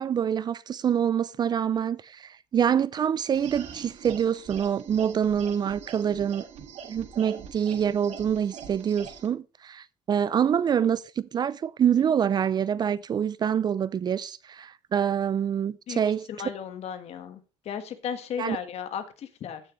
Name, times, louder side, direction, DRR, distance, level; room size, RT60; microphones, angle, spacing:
voice 1, 0.0-6.4 6.9-16.3 18.4-18.6, right 8 dB, 35° right, 0.4 m, -26 dB
sound 1, 3.3-9.3, right 7 dB, 65° right, 1.6 m, -43 dB
voice 2, 16.3-19.6, left 8 dB, 60° left, 1.5 m, -35 dB
15.0 x 6.3 x 3.1 m
cardioid pair, 120°, 12 cm